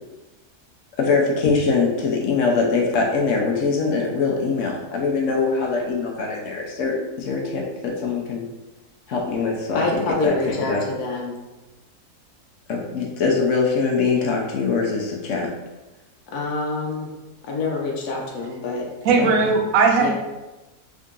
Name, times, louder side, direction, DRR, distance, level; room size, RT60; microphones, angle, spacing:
voice 1, 1.0-8.5 9.1-10.8 12.7-15.5 19.2-19.3, left 4 dB, 65° left, -1 dB, 0.9 m, -23 dB
voice 2, 9.7-11.3 16.3-17.1 17.4-18.9 20.0-20.1, left 3 dB, 80° left, -1 dB, 1.2 m, -26 dB
voice 3, 19.0-20.1, right 4 dB, 75° right, 2 dB, 0.9 m, -17 dB
3.7 x 2.7 x 3.6 m, 1.1 s
omnidirectional pair, 1.6 m